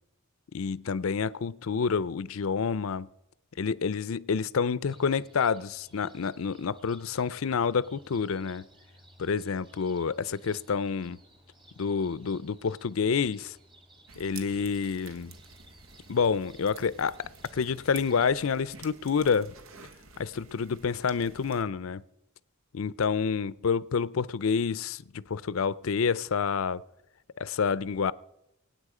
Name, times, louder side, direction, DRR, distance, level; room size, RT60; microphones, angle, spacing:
voice 1, 0.5-3.1 3.6-8.6 9.2-11.2 11.8-13.6 14.2-15.3 16.1-19.5 20.2-22.0 22.7-26.8 27.4-28.1, left 6 dB, 80° left, 0.5 m, -28 dB
sound 1, 4.9-18.5, right 1 dB, 25° right, 1.9 m, -57 dB
sound 2, 14.1-21.6, right 5 dB, 90° right, 1.3 m, -50 dB
24.5 x 9.0 x 5.0 m
head